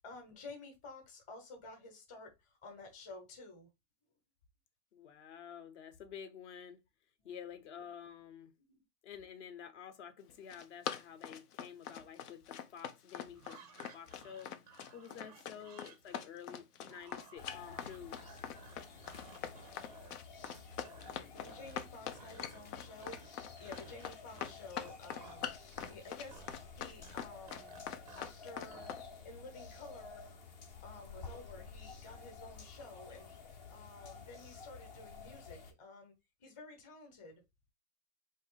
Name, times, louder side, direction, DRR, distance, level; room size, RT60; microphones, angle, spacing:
voice 1, 0.0-3.7 7.2-7.3 8.7-8.8 15.0-15.3 19.1-20.1 21.0-26.4 26.7-27.7 28.1-28.9 29.2-30.3 30.8-36.1 36.4-37.4, left 3 dB, 15° left, 1.0 m, -52 dB
voice 2, 4.9-6.8 7.2-8.5 9.0-14.5 14.9-18.2, left 8 dB, 50° left, 0.9 m, -50 dB
Run, 10.3-29.0, left 9 dB, 90° left, 0.9 m, -43 dB
sound 1, 13.3-21.2 21.4-21.9 22.1-22.7 23.0-29.0, right 6 dB, 30° right, 0.4 m, -58 dB
sound 2, 17.4-35.7, left 4 dB, 30° left, 0.5 m, -52 dB
4.2 x 2.8 x 3.9 m
supercardioid pair, 175°, 45 cm